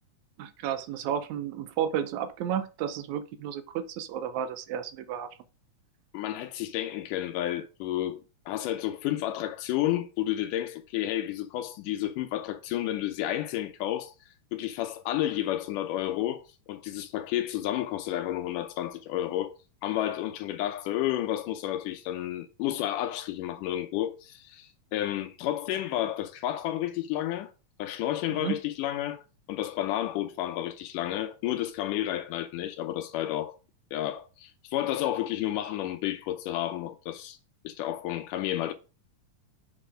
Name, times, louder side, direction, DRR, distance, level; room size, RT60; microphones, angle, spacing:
voice 1, 0.4-5.3 28.4-28.6, right 9 dB, 75° right, 1.9 m, -32 dB
voice 2, 6.1-14.1 14.5-16.4 16.7-19.6 19.8-27.5 27.8-29.2 29.5-33.5 33.9-37.4 37.6-38.7, left 13 dB, 85° left, 2.2 m, -31 dB
7.4 x 4.1 x 5.0 m
omnidirectional pair, 3.6 m